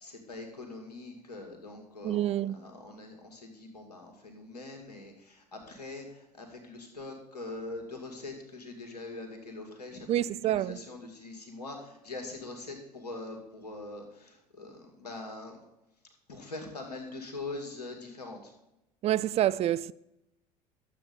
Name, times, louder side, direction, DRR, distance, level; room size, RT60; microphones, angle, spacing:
voice 1, 0.0-15.6 16.3-18.5, left 2 dB, 85° left, 2.1 m, -43 dB
voice 2, 2.0-2.6 10.1-10.8 19.0-19.9, right 12 dB, 30° right, 0.3 m, -27 dB
12.0 x 7.8 x 4.1 m
figure-of-eight pair, 70°, 20 cm